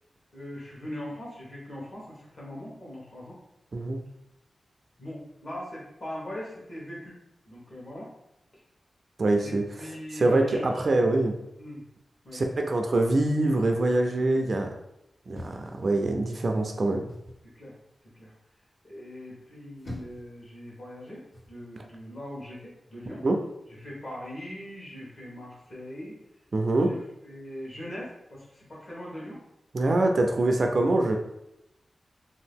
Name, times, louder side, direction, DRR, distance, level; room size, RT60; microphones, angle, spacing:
voice 1, 0.3-3.4 5.0-7.2 7.5-8.1 9.4-10.8 11.6-11.8 12.2-12.6 17.4-17.7 18.1-18.3 18.8-23.2 23.8-26.2 26.8-27.0 27.2-29.4, left 1 dB, 40° left, -6 dB, 1.2 m, -41 dB
voice 2, 9.2-9.6 10.1-11.3 12.3-14.7 15.3-17.1 23.2-23.4 26.5-26.9 29.7-31.2, right 2 dB, 45° right, 3 dB, 0.3 m, -24 dB
sound 1, 15.3-16.4 17.1-17.5 19.4-20.3 21.3-21.6, left 1 dB, 80° left, 1.5 m, -43 dB
2.8 x 2.4 x 3.5 m, 0.86 s
wide cardioid pair, 160°, 0 cm